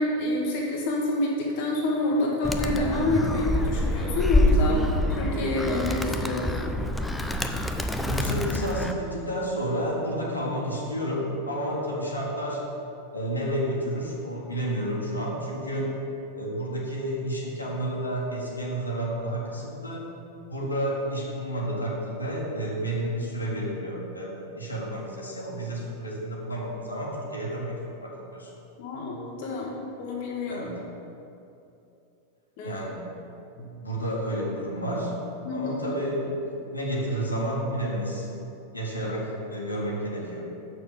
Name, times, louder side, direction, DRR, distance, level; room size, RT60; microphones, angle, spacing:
voice 1, 0.0-6.7 28.8-30.7 32.6-32.8 33.6-33.7 35.4-35.9, left 2 dB, 50° left, -3 dB, 1.2 m, -28 dB
Animal, 2.4-8.9, left 1 dB, 5° left, 0.5 m, -26 dB
voice 2, 8.0-12.7 13.1-15.9 16.3-20.1 20.5-28.5 30.5-30.8 32.6-33.0 33.8-35.2 35.5-38.3 38.7-40.5, right 1 dB, 80° left, -4 dB, 1.7 m, -30 dB
6.8 x 6.2 x 6.4 m, 2.8 s
figure-of-eight pair, 90°, 0 cm